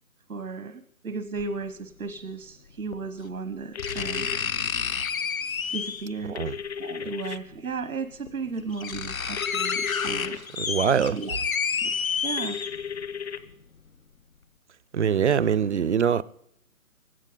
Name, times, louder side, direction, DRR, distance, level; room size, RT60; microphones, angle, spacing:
voice 1, 0.3-4.3 5.7-6.4 6.8-10.4 11.1-11.4 11.7-11.9 12.2-12.6, right 4 dB, 85° right, 1.1 m, -35 dB
sound 1, 1.4-1.5 2.9-3.0 3.8-6.2 7.5-7.6 8.3-8.4 8.6-13.0 13.5-13.6, left 6 dB, 70° left, 1.3 m, -29 dB
sound 2, 3.7-4.4 6.3-7.4 9.4-10.4 12.4-13.4, left 7 dB, 50° left, 1.0 m, -35 dB
voice 2, 10.6-11.2 14.9-16.2, right 7 dB, 55° right, 0.5 m, -23 dB
19.0 x 16.5 x 3.9 m
figure-of-eight pair, 155°, 43 cm